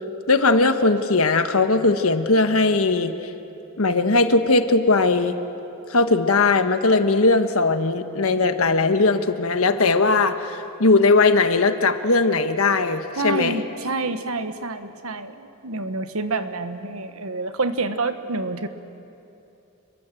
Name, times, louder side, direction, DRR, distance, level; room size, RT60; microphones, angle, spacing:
voice 1, 0.3-3.1 3.8-5.4 5.9-13.6, left 3 dB, 85° left, 8 dB, 1.4 m, -19 dB
voice 2, 13.2-18.7, right 3 dB, 90° right, 9 dB, 1.4 m, -28 dB
28.5 x 21.5 x 7.8 m, 2.8 s
head